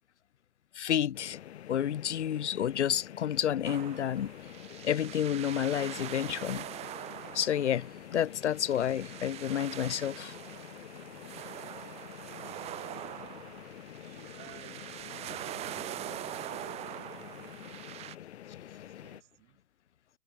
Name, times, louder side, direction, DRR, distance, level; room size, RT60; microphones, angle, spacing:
voice 1, 0.8-1.4 1.7-4.3 4.8-6.6 7.3-10.3, left 10 dB, 85° left, 0.6 m, -30 dB
sound 1, 1.1-19.2, left 11 dB, 70° left, 2.0 m, -48 dB
sound 2, 3.6-18.1, right 14 dB, 20° right, 0.5 m, -43 dB
voice 2, 12.3-13.6 13.9-15.7 16.5-18.1 18.6-19.6, right 39 dB, 45° right, 4.5 m, -57 dB
hypercardioid pair, 110°, 34 cm